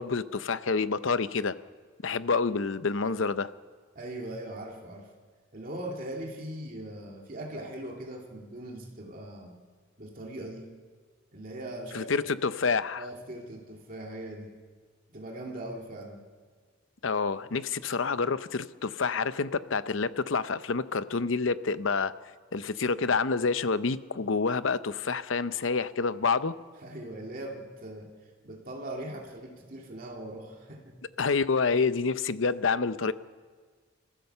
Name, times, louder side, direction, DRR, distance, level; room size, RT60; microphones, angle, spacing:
voice 1, 0.0-1.6 2.0-3.5 11.9-13.0 17.0-22.1 22.5-26.5 31.2-33.1, left 4 dB, 70° left, 14 dB, 0.7 m, -28 dB
voice 2, 3.9-5.1 5.5-9.6 10.0-10.7 11.3-12.1 13.0-14.6 15.1-16.2 26.8-28.1 28.4-31.0, right 1 dB, 45° right, 0 dB, 2.5 m, -40 dB
27.0 x 15.0 x 6.8 m, 1.5 s
head